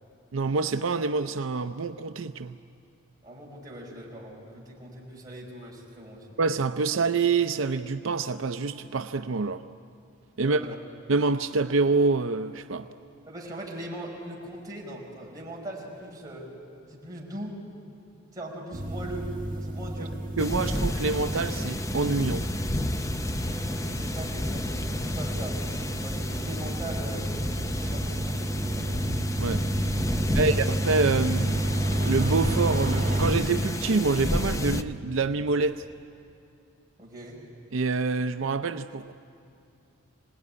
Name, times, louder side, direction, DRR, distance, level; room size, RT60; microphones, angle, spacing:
voice 1, 0.3-2.6 6.4-9.6 10.4-10.6 11.1-12.9 20.0-20.1 20.4-22.5 29.4-29.6 30.3-31.7 32.0-35.8 37.7-39.1, right 4 dB, 70° right, 8 dB, 0.5 m, -26 dB
voice 2, 3.2-6.3 10.3-10.8 13.3-16.5 16.9-17.6 18.3-20.2 23.4-25.6 26.0-27.3 27.6-29.1 30.1-30.6 37.0-37.4, right 1 dB, 20° right, -3 dB, 5.0 m, -40 dB
sound 1, 18.7-33.3, right 1 dB, 40° right, 2.0 m, -31 dB
sound 2, 20.4-34.8, left 1 dB, 15° left, 0.6 m, -31 dB
26.0 x 19.0 x 9.7 m, 2.6 s
head